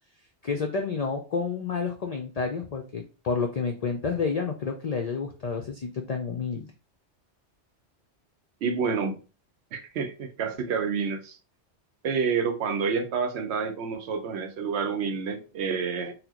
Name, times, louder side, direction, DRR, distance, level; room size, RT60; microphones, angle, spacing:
voice 1, 0.4-6.7, left 5 dB, 65° left, 0.4 m, -30 dB
voice 2, 8.6-9.2 9.7-11.4 12.0-16.1, right 5 dB, 70° right, 0.8 m, -28 dB
4.1 x 2.1 x 2.8 m
omnidirectional pair, 1.2 m